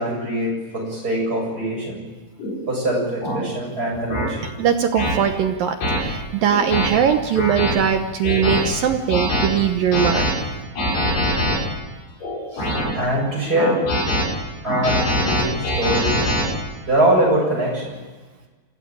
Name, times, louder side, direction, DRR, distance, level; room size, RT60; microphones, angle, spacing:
voice 1, 0.0-2.0 2.7-4.5 12.5-13.9 14.6-16.3 16.9-18.0, right 1 dB, 20° right, -1 dB, 8.0 m, -23 dB
sound 1, 2.4-2.6 3.2-3.4 4.1-4.3 5.0-5.1 5.8-6.0 6.5-6.9 7.4-7.7 8.2-8.6 9.1-9.5 9.9-10.3 10.8-11.6 12.2-12.9 13.6-14.2 14.6-16.4, left 1 dB, 60° left, 9.2 m, -22 dB
voice 2, 4.6-10.3, right 8 dB, 70° right, 6 dB, 2.2 m, -20 dB
27.0 x 16.5 x 8.9 m, 1.3 s
omnidirectional pair, 5.2 m